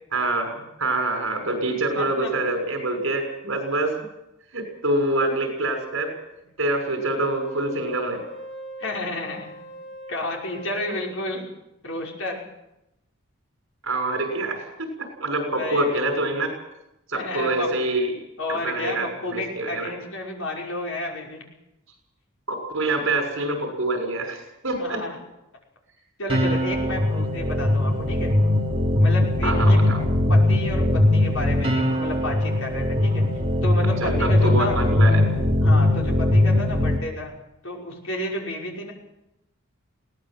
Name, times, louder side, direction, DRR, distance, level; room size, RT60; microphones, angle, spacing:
voice 1, 0.1-3.9 4.5-6.1 6.6-8.2 13.8-16.5 17.1-18.1 18.5-19.9 22.5-25.0 29.4-30.0 34.0-35.5, right 2 dB, 70° right, 4 dB, 6.6 m, -26 dB
voice 2, 1.9-2.3 8.8-9.5 10.1-11.5 11.8-12.4 15.6-16.0 17.1-18.1 18.4-21.4 24.8-25.2 26.2-28.3 29.0-29.8 30.3-33.3 33.6-34.8 35.6-37.3 37.6-38.9, left 1 dB, 70° left, -1 dB, 5.7 m, -31 dB
Wind instrument woodwind instrument, 6.9-11.3, right 1 dB, 25° left, 5.8 m, -40 dB
sound 1, 26.3-37.0, left 1 dB, 25° right, 2.9 m, -20 dB
21.0 x 18.0 x 7.9 m, 0.88 s
head